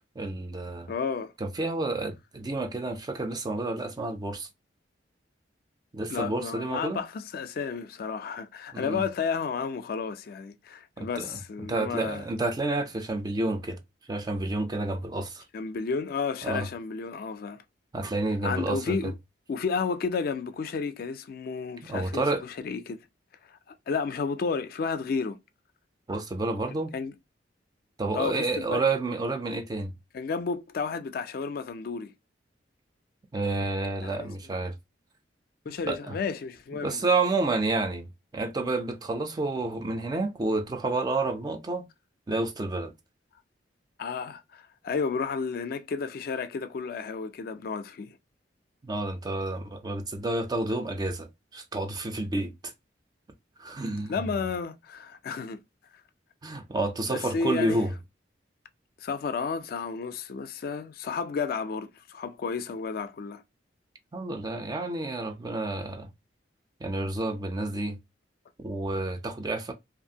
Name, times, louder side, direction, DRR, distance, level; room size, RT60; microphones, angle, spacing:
voice 1, 0.2-0.9 1.4-4.5 5.9-7.0 8.7-9.0 11.0-11.4 11.7-13.8 14.1-15.4 16.4-16.7 17.9-19.0 21.9-22.4 26.1-26.9 28.0-29.9 33.3-34.7 35.8-36.2 36.8-38.1 38.3-41.8 42.3-42.9 48.8-52.7 53.6-54.2 56.4-57.9 64.1-66.1 66.8-68.0 68.6-69.7, right 2 dB, 20° right, 0.3 m, -30 dB
voice 2, 0.9-1.3 6.1-12.2 15.5-17.6 18.4-19.1 19.5-23.1 23.5-25.4 26.9-27.1 28.1-28.8 30.1-32.1 34.0-34.3 35.7-37.1 44.0-48.2 54.1-55.6 57.1-57.8 59.0-63.4, left 5 dB, 55° left, 0.3 m, -32 dB
2.6 x 2.5 x 2.7 m
head